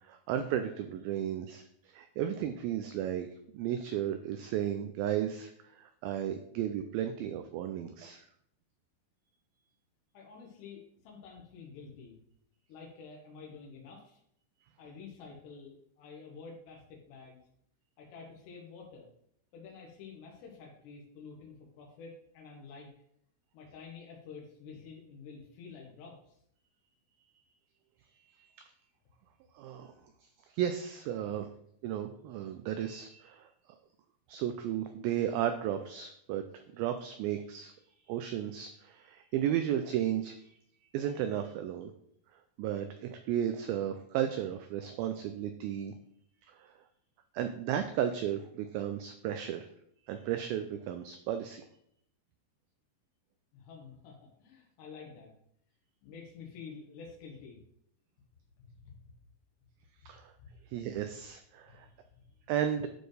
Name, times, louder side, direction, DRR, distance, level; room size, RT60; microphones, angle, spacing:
voice 1, 0.0-3.3 3.5-8.2 28.4-28.5 29.6-29.9 30.5-31.5 31.8-33.5 34.3-37.7 38.1-40.5 40.9-41.9 42.6-45.9 46.4-46.7 47.3-49.7 50.1-51.6 60.1-60.3 60.7-61.9 62.5-62.9, right 10 dB, 90° right, 8 dB, 2.1 m, -34 dB
voice 2, 10.1-12.2 12.7-14.2 14.8-17.4 18.0-19.1 19.5-22.9 23.5-26.4 31.2-31.4 53.5-55.3 56.0-57.6 58.8-58.9 60.4-60.5 61.7-62.0, left 5 dB, 90° left, -1 dB, 3.3 m, -49 dB
11.5 x 4.3 x 3.3 m, 0.71 s
omnidirectional pair, 4.7 m